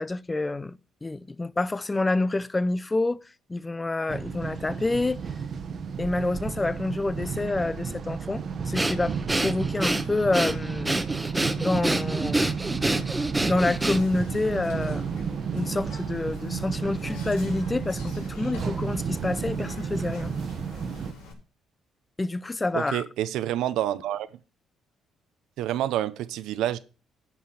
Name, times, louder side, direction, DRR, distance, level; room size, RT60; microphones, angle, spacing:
voice 1, 0.0-3.2 3.5-5.2 6.0-11.1 11.6-12.5 13.5-15.1 15.5-20.3 22.2-23.0, left 2 dB, 20° left, 0.6 m, -28 dB
sound 1, 4.1-21.1, right 6 dB, 55° right, 1.1 m, -32 dB
Breathing, 8.7-14.3, right 1 dB, 10° right, 1.1 m, -27 dB
Whispering, 13.6-21.3, left 4 dB, 85° left, 3.4 m, -46 dB
voice 2, 22.7-24.3 25.6-26.8, right 12 dB, 80° right, 0.7 m, -28 dB
10.5 x 5.7 x 6.4 m
supercardioid pair, 70°, 0 cm